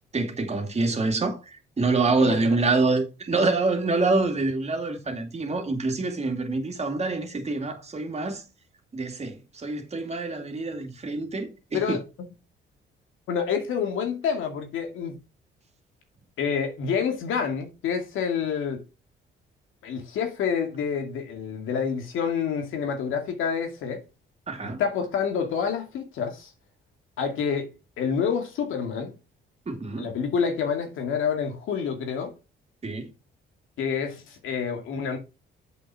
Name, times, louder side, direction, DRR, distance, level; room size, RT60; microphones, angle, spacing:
voice 1, 0.1-8.5 8.9-12.0 24.5-24.8 29.7-30.1 32.8-33.1, right 3 dB, 35° right, 2.5 m, -26 dB
voice 2, 13.3-15.2 16.4-18.8 19.8-24.0 24.6-26.5 27.2-27.7 28.0-29.1 30.0-32.3 33.8-35.2, left 6 dB, 80° left, 2.3 m, -28 dB
8.0 x 5.7 x 4.8 m
cardioid pair, 90°, 20 cm